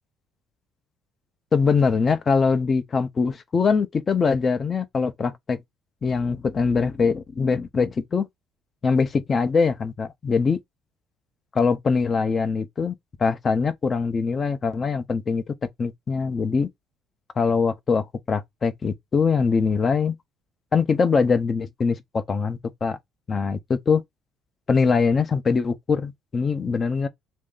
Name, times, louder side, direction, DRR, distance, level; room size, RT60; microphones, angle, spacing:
voice 1, 1.5-5.6 6.0-8.3 8.8-10.6 11.5-12.9 13.2-16.7 17.4-20.2 20.7-23.0 23.3-24.0 24.7-27.1, left 5 dB, 25° left, 0.5 m, -22 dB
3.1 x 2.6 x 3.7 m
cardioid pair, 145°, 0 cm